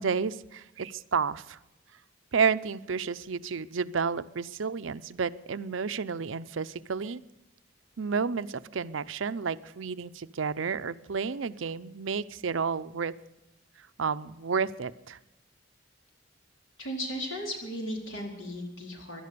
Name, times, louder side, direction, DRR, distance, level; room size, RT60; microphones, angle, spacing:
voice 1, 0.0-1.6 2.3-7.2 8.0-13.1 13.8-15.2, right 5 dB, 80° right, 14 dB, 0.6 m, -31 dB
voice 2, 16.8-19.2, equal, 75° left, 1 dB, 4.3 m, -36 dB
17.5 x 12.0 x 6.8 m, 0.96 s
head